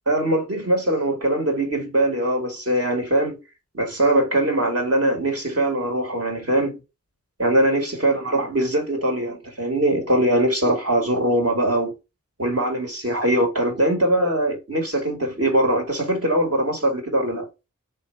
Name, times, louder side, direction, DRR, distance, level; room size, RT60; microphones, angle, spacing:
voice 1, 0.1-3.4 3.7-6.8 7.4-11.9 12.4-17.5, right 1 dB, 50° right, 1.6 m, -21 dB
3.7 x 2.7 x 4.3 m
wide cardioid pair, 45°, 31 cm